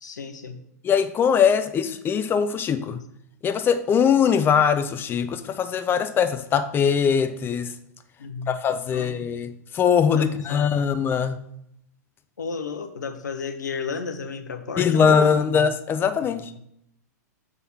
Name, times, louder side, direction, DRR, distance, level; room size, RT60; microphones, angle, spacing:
voice 1, 0.0-0.6 8.2-8.6 8.9-9.3 10.1-10.7 12.4-15.6 16.2-16.5, left 5 dB, 80° left, 0.9 m, -33 dB
voice 2, 0.8-3.0 3.4-7.7 8.5-11.4 14.8-16.4, left 7 dB, 20° left, 0.6 m, -21 dB
6.8 x 3.7 x 5.8 m
hypercardioid pair, 105°, 9 cm